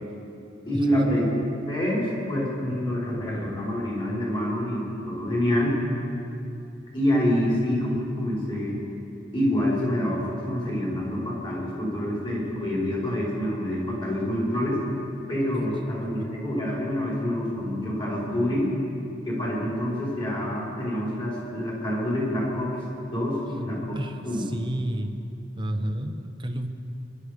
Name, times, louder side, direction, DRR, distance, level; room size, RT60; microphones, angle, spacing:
voice 1, 0.7-1.4 1.7-5.8 6.9-8.8 9.3-14.8 15.3-18.7 19.2-22.8 23.1-24.0 24.2-24.4, equal, 25° left, -5 dB, 4.7 m, -26 dB
voice 2, 23.9-25.2 25.6-26.7, right 1 dB, 25° right, 6 dB, 1.0 m, -31 dB
23.5 x 11.0 x 5.1 m, 2.7 s
head